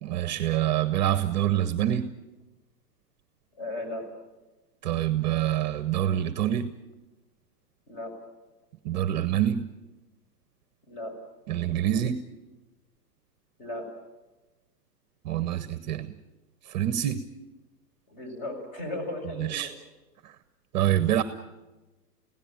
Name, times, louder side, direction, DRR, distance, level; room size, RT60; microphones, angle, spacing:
voice 1, 0.0-2.1 4.8-6.7 8.8-9.6 11.5-12.2 15.2-16.1 16.6-17.2 19.4-19.7 20.2-20.3 20.7-21.2, right 11 dB, 30° right, 13 dB, 0.8 m, -26 dB
voice 2, 3.6-4.0 7.9-8.1 10.9-11.1 13.6-13.8 18.1-19.7, left 1 dB, 40° left, 5 dB, 6.7 m, -35 dB
24.5 x 17.0 x 8.9 m, 1.1 s
hypercardioid pair, 160°, 48 cm